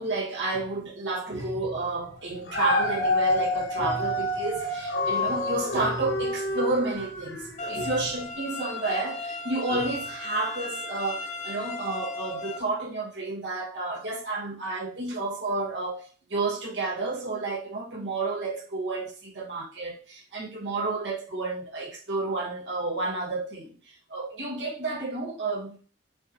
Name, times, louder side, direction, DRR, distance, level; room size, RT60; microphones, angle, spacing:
voice 1, 0.0-25.8, right 3 dB, 80° right, 1.2 m, -31 dB
Dog, 2.3-7.6 8.2-8.3, left 1 dB, 65° left, 1.0 m, -28 dB
sound 1, 7.6-12.6, left 3 dB, 40° left, 0.4 m, -36 dB
6.0 x 2.8 x 2.6 m
head